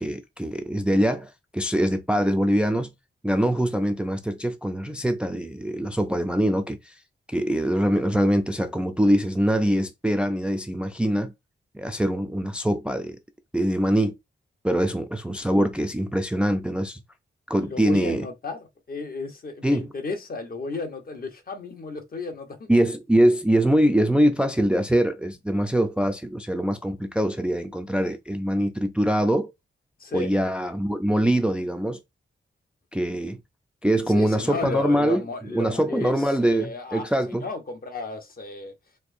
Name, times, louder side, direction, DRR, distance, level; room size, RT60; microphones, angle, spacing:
voice 1, 0.0-2.9 3.2-7.0 7.3-11.3 11.7-13.2 13.5-14.2 14.6-17.0 17.5-18.3 19.6-19.9 22.7-29.5 30.1-32.0 32.9-33.4 33.8-35.2 35.5-37.4, equal, 5° right, 0.4 m, -23 dB
voice 2, 17.6-22.7 30.0-30.3 34.1-36.1 36.4-38.7, left 3 dB, 45° left, 0.8 m, -34 dB
4.3 x 2.6 x 2.5 m
wide cardioid pair, 135°, 21 cm